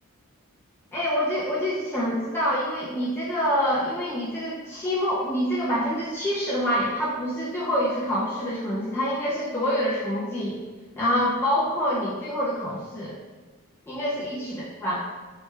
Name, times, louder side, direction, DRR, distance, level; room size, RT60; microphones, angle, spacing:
voice 1, 0.9-10.6 11.0-13.2 13.9-15.0, equal, 10° left, -8 dB, 0.4 m, -26 dB
3.1 x 2.2 x 3.1 m, 1.4 s
head